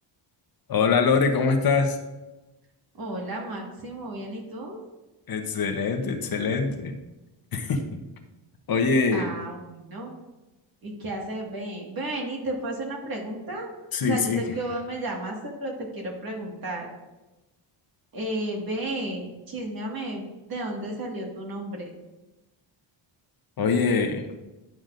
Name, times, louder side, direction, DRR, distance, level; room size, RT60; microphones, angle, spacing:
voice 1, 0.7-2.0 5.3-7.0 7.5-7.8 8.7-9.3 13.9-14.4 23.6-24.3, left 4 dB, 45° left, 6 dB, 0.9 m, -23 dB
voice 2, 2.9-4.8 9.1-10.1 10.8-16.9 18.1-21.9, right 1 dB, 45° right, 0 dB, 1.9 m, -33 dB
10.5 x 6.0 x 2.5 m, 1.0 s
cardioid pair, 130°, 49 cm